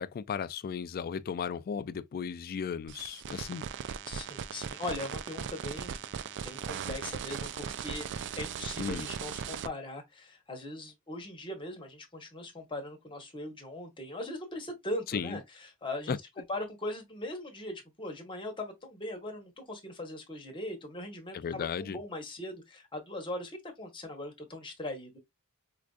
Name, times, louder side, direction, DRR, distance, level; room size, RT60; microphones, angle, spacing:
voice 1, 0.0-3.6 8.8-9.1 15.1-15.4 16.1-16.2 21.3-22.0, left 6 dB, 40° left, 0.3 m, -35 dB
sound 1, 2.9-9.7, right 7 dB, 55° right, 0.3 m, -38 dB
voice 2, 4.1-6.0 6.4-8.1 8.4-16.1 16.5-25.2, left 1 dB, 25° left, 1.1 m, -40 dB
4.7 x 2.5 x 2.3 m
head